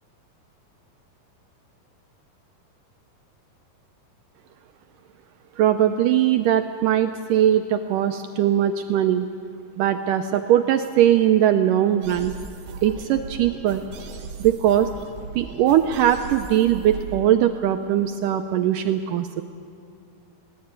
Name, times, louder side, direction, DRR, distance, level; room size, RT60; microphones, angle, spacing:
voice 1, 5.6-9.3 9.8-12.3 12.8-13.8 14.4-14.9 15.4-19.4, right 11 dB, 80° right, 7 dB, 1.9 m, -20 dB
sound 1, 12.0-17.2, right 4 dB, 55° right, 2.5 m, -37 dB
20.5 x 18.0 x 8.9 m, 2.2 s
omnidirectional pair, 4.5 m